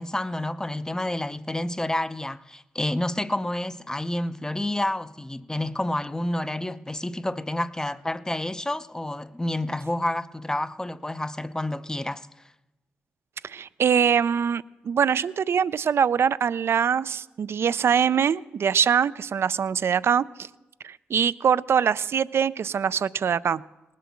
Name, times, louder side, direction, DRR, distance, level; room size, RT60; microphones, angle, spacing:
voice 1, 0.0-12.3, left 1 dB, 15° left, 0.5 m, -29 dB
voice 2, 13.4-20.5 20.8-23.6, right 7 dB, 60° right, 0.4 m, -23 dB
18.5 x 7.5 x 7.1 m
cardioid pair, 60°, 5 cm